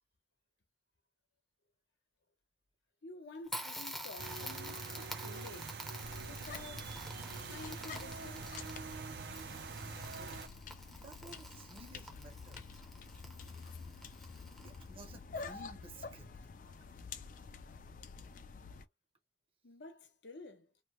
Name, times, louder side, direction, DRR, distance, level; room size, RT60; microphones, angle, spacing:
voice 1, 3.0-5.8 6.2-6.9 7.5-8.5 19.6-20.7, left 2 dB, 80° left, 0.9 m, -51 dB
Crackle, 3.5-15.0, equal, ahead, 0.6 m, -48 dB
sound 1, 4.2-10.5, right 4 dB, 60° right, 0.5 m, -45 dB
sound 2, 6.0-18.8, left 5 dB, 45° left, 0.4 m, -49 dB
voice 2, 10.9-12.7 14.6-16.3 16.6-16.9 17.3-17.4, right 2 dB, 30° right, 0.7 m, -54 dB
2.9 x 2.1 x 2.9 m
head